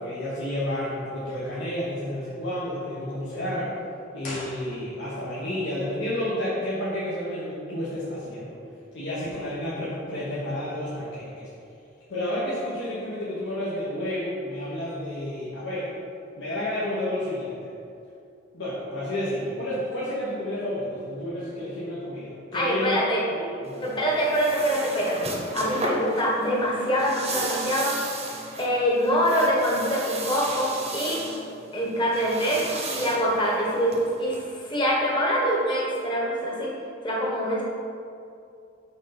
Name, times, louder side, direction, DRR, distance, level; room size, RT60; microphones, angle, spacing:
voice 1, 0.0-3.7 4.1-8.6 8.9-11.5 12.1-15.9 16.4-17.7 18.5-23.0 23.3-23.9, left 1 dB, 65° left, -9 dB, 1.3 m, -31 dB
sound 1, 4.2-5.3 5.5-5.6, left 1 dB, 45° left, 1.3 m, -39 dB
voice 2, 22.5-23.2 23.8-25.3 25.5-27.9 28.6-31.2 31.7-32.6 32.9-36.7 37.0-37.6, equal, 25° left, -4 dB, 1.4 m, -24 dB
sound 2, 23.6-34.4, right 2 dB, 35° right, 0.9 m, -35 dB
6.2 x 4.0 x 5.9 m, 2.6 s
head